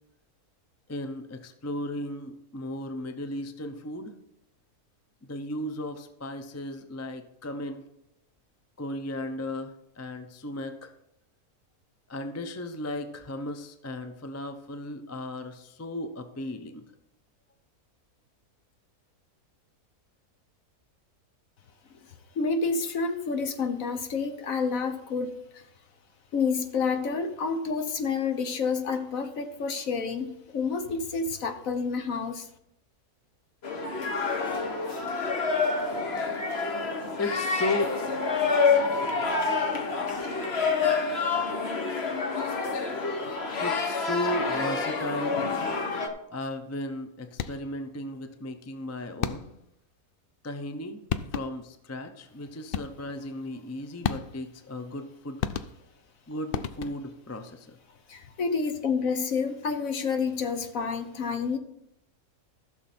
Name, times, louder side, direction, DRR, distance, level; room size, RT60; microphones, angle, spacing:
voice 1, 0.9-4.1 5.3-7.8 8.8-10.9 12.1-16.8 36.7-37.8 43.6-45.4 46.3-49.5 50.4-55.4 56.3-57.8, left 1 dB, 20° left, 7 dB, 0.4 m, -35 dB
voice 2, 22.3-25.6 26.3-32.5 58.1-61.6, left 5 dB, 60° left, 8 dB, 1.4 m, -29 dB
sound 1, 33.6-46.1, left 4 dB, 45° left, 1.3 m, -28 dB
sound 2, 47.3-47.8 49.2-49.7 50.8-50.9 51.1-51.7 52.7-53.2 54.0-54.6 55.4-56.1 56.5-57.2, left 8 dB, 85° left, 0.5 m, -33 dB
14.5 x 6.6 x 4.3 m, 0.81 s
omnidirectional pair, 1.7 m